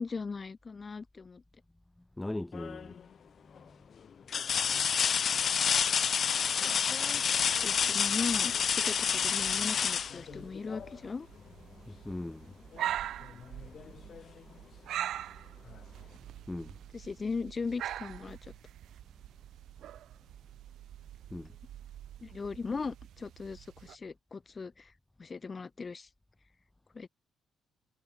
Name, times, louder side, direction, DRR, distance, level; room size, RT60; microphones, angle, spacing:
voice 1, 0.0-1.4 4.7-4.8 5.1-5.3 6.4-7.2 7.6-11.3 16.9-18.5 22.2-24.9 25.2-26.1 26.9-27.1, left 4 dB, 35° left, 2.9 m, -38 dB
voice 2, 2.2-3.0 3.5-3.8 11.8-12.8 13.4-14.2 14.9-15.1 16.5-16.8 21.3-21.6, left 1 dB, 10° left, 0.9 m, -41 dB
sound 1, 2.5-3.0 3.6-3.7 4.3-11.0 12.7-12.9 13.3-14.4 15.7-15.8, left 7 dB, 50° left, 1.3 m, -29 dB
sound 2, 7.4-24.0, right 12 dB, 75° right, 2.1 m, -44 dB
cardioid pair, 90°, 0 cm